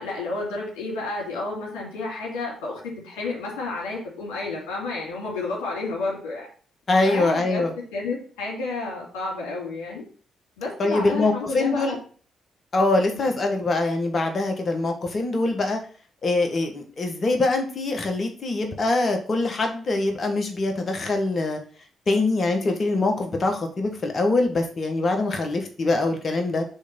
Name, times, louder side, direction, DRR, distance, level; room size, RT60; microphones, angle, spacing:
voice 1, 0.0-6.5 7.0-7.6 7.9-10.0 10.6-12.0 13.1-13.3, left 3 dB, 80° left, -3 dB, 2.6 m, -31 dB
voice 2, 6.9-7.7 10.8-11.9 12.7-15.8 16.2-21.6 22.1-26.6, left 2 dB, 45° left, 4 dB, 1.5 m, -23 dB
6.3 x 3.4 x 5.3 m, 0.43 s
hypercardioid pair, 45°, 0 cm